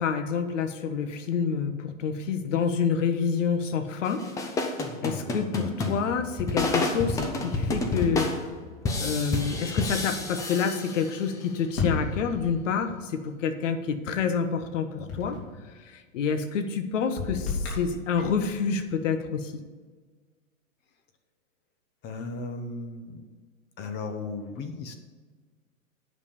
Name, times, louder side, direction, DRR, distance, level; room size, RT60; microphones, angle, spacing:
voice 1, 0.0-4.2 5.0-8.3 9.0-15.4 15.8-19.5, left 6 dB, 65° left, 9 dB, 1.2 m, -28 dB
sound 1, 4.0-11.5, left 3 dB, 10° left, 0.5 m, -30 dB
sound 2, 11.8-12.8 15.1-15.6 17.2-18.5, left 4 dB, 45° left, 3.5 m, -32 dB
voice 2, 22.0-23.3 23.8-24.9, left 3 dB, 25° left, 7 dB, 0.8 m, -36 dB
9.5 x 5.6 x 6.9 m, 1.4 s
hypercardioid pair, 130°, 41 cm